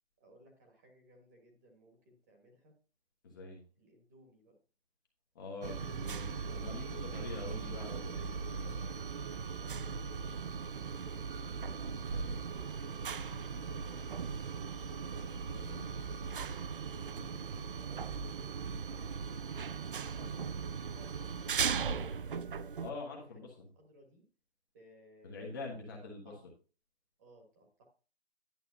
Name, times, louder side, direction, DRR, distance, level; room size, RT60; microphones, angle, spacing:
voice 1, 0.2-2.8 3.8-4.6 9.5-15.3 17.1-19.7 20.3-22.8 23.1-23.4 23.7-24.3 24.7-26.5 27.2-27.8, equal, 15° right, 1 dB, 1.5 m, -62 dB
voice 2, 3.2-3.6 5.3-8.9 12.1-12.3 15.5-15.9 17.2-17.4 20.2-20.4 22.8-23.7 25.2-26.3, left 3 dB, 20° left, -1 dB, 1.2 m, -45 dB
sound 1, 5.6-22.9, right 5 dB, 55° right, 0.5 m, -38 dB
11.0 x 7.3 x 2.7 m, 0.36 s
hypercardioid pair, 170°, 33 cm